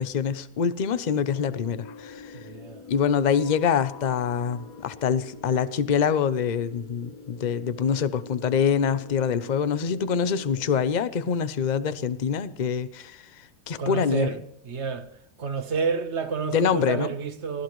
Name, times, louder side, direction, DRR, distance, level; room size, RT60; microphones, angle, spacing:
voice 1, 0.0-2.4 2.9-13.2 13.7-14.3 16.5-17.1, left 7 dB, 40° left, 0.7 m, -25 dB
sound 1, 1.1-10.7, left 4 dB, 75° left, 1.7 m, -45 dB
voice 2, 2.3-2.8 13.8-14.4 14.6-15.1 15.4-17.6, right 5 dB, 50° right, 1.4 m, -29 dB
24.5 x 17.0 x 3.1 m
omnidirectional pair, 1.5 m